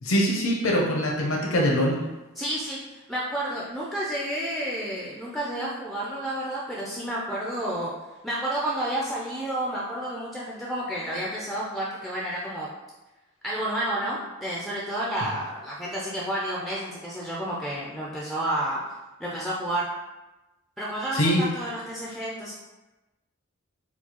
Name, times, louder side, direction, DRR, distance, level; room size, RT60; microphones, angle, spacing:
voice 1, 0.0-1.9 21.1-21.4, equal, 70° left, -2 dB, 0.7 m, -23 dB
voice 2, 2.4-7.9 8.2-12.7 13.4-18.8 19.2-19.9 20.8-22.5, right 1 dB, ahead, -5 dB, 0.4 m, -30 dB
4.4 x 2.3 x 2.9 m, 1.1 s
head